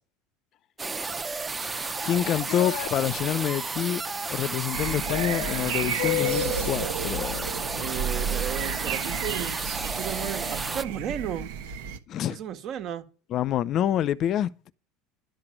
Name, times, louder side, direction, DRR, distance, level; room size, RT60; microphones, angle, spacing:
sound 1, 0.8-10.8, right 4 dB, 20° right, 0.8 m, -32 dB
sound 2, 1.6-2.9 5.1-6.7, left 16 dB, 85° left, 0.6 m, -32 dB
voice 1, 2.0-4.0 4.3-7.8 12.1-12.4 13.3-14.5, left 10 dB, 45° left, 0.6 m, -27 dB
sound 3, 4.7-12.0, right 7 dB, 85° right, 1.3 m, -32 dB
voice 2, 4.9-6.1 7.7-9.5 9.8-11.5 12.3-13.0, right 9 dB, 45° right, 1.6 m, -35 dB
12.0 x 6.0 x 8.8 m
supercardioid pair, 120°, 0 cm